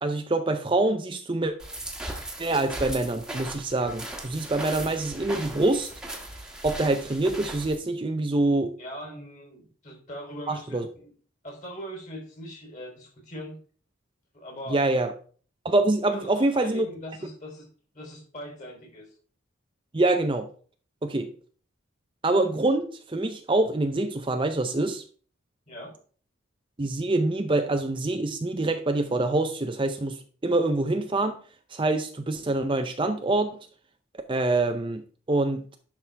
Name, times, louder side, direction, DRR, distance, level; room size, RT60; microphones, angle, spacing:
voice 1, 0.0-1.5 2.4-5.9 6.6-8.7 10.5-10.9 14.7-15.1 15.6-16.8 19.9-20.5 21.0-21.3 22.2-25.0 26.8-31.4 31.7-33.5 34.3-35.0 35.3-35.6, right 2 dB, 25° right, 6 dB, 0.6 m, -25 dB
sound 1, 1.6-7.8, right 1 dB, 5° right, 1.3 m, -38 dB
voice 2, 8.8-11.1 11.4-13.6 14.3-14.9 16.1-17.7 17.9-19.1 25.7-25.9, equal, 35° left, 0 dB, 3.5 m, -41 dB
11.0 x 6.1 x 3.4 m, 0.42 s
head